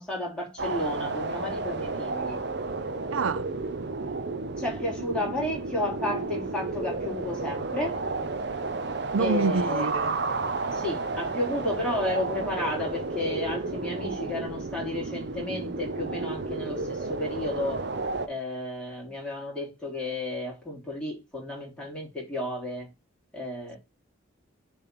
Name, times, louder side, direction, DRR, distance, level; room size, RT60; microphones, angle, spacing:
voice 1, 0.0-2.4 4.6-8.0 9.2-9.9 10.7-17.8 18.2-22.9 23.3-23.8, left 1 dB, 5° left, 3.2 m, -32 dB
sound 1, 0.6-18.3, right 3 dB, 55° right, 0.8 m, -32 dB
voice 2, 3.1-3.5 9.1-10.2, right 4 dB, 85° right, 0.5 m, -27 dB
6.8 x 3.5 x 5.9 m
head